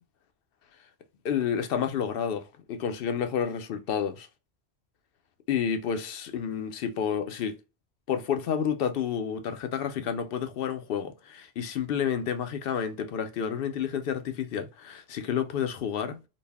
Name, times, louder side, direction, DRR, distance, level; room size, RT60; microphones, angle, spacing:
voice 1, 1.2-4.3 5.5-7.6 8.1-16.2, left 8 dB, 70° left, 0.7 m, -30 dB
4.0 x 2.1 x 3.3 m
omnidirectional pair, 1.0 m